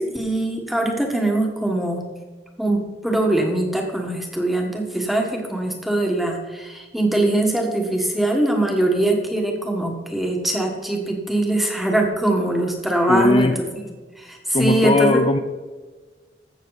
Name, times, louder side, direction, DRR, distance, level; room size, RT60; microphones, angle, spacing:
voice 1, 0.0-2.0 2.6-13.8 14.2-15.2, right 1 dB, ahead, 1 dB, 1.4 m, -22 dB
voice 2, 13.1-13.6 14.5-15.4, left 2 dB, 30° left, 7 dB, 0.4 m, -18 dB
15.0 x 6.4 x 4.0 m, 1.4 s
head